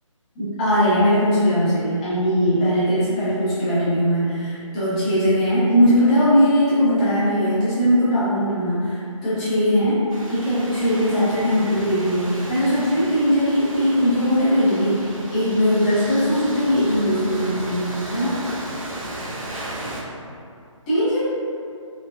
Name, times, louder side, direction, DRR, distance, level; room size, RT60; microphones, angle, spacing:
voice 1, 0.4-10.0 10.3-18.3 20.9-21.3, equal, 15° left, -11 dB, 0.5 m, -20 dB
sound 1, 10.1-20.0, right 1 dB, 85° right, 0.6 m, -35 dB
3.1 x 2.1 x 2.2 m, 2.4 s
figure-of-eight pair, 155°, 17 cm